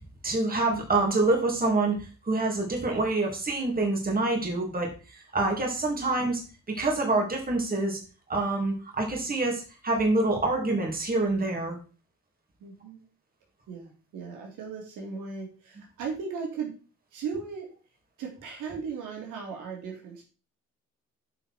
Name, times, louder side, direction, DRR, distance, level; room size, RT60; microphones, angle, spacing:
voice 1, 0.2-8.0 8.3-11.8, right 2 dB, 30° right, 1 dB, 3.0 m, -26 dB
voice 2, 12.6-13.0 13.7-16.7 17.1-17.7 18.2-20.2, right 5 dB, 85° right, 0 dB, 3.5 m, -37 dB
9.2 x 5.5 x 4.5 m, 0.35 s
cardioid pair, 90°, 30 cm